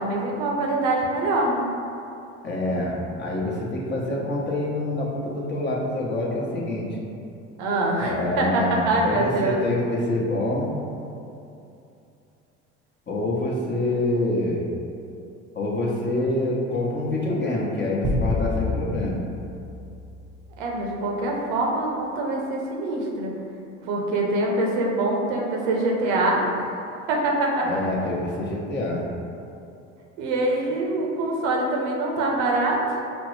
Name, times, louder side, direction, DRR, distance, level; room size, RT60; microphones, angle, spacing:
voice 1, 0.0-1.7 7.6-9.6 20.6-23.3 23.9-26.7 27.1-27.8 30.2-33.0, right 2 dB, 75° right, -1 dB, 0.8 m, -24 dB
voice 2, 2.4-6.9 8.0-10.7 13.1-14.6 15.5-19.2 27.6-29.0, left 1 dB, 30° left, -4 dB, 0.9 m, -26 dB
sound 1, 18.0-20.7, left 2 dB, 10° right, 0.4 m, -28 dB
5.1 x 2.0 x 3.1 m, 2.7 s
hypercardioid pair, 70°, 36 cm